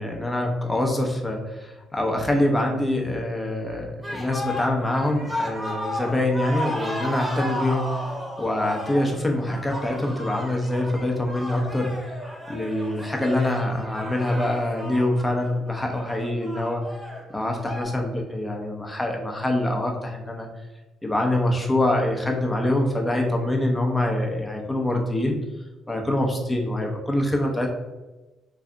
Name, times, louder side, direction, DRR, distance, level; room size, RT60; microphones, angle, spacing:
voice 1, 0.0-12.1 12.5-16.8 17.3-20.5 21.0-25.4 25.9-27.7, left 1 dB, 15° left, 1 dB, 0.8 m, -25 dB
sound 1, 4.0-17.8, left 1 dB, 10° right, 1.0 m, -34 dB
3.2 x 2.5 x 3.7 m, 1.1 s
supercardioid pair, 75°, 0 cm